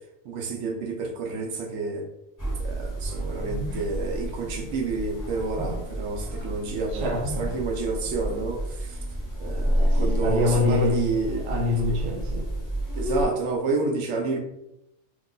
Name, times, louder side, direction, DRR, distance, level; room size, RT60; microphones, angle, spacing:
voice 1, 0.2-2.1 2.6-9.0 9.4-11.5 11.9-12.0 13.0-14.4, right 3 dB, 80° right, 2 dB, 0.9 m, -29 dB
sound 1, 2.4-13.2, equal, 20° left, 0.9 m, -29 dB
voice 2, 6.9-7.5 9.7-11.0 11.4-12.6, left 2 dB, 40° right, -1 dB, 0.7 m, -26 dB
3.0 x 2.2 x 3.7 m, 0.85 s
omnidirectional pair, 1.2 m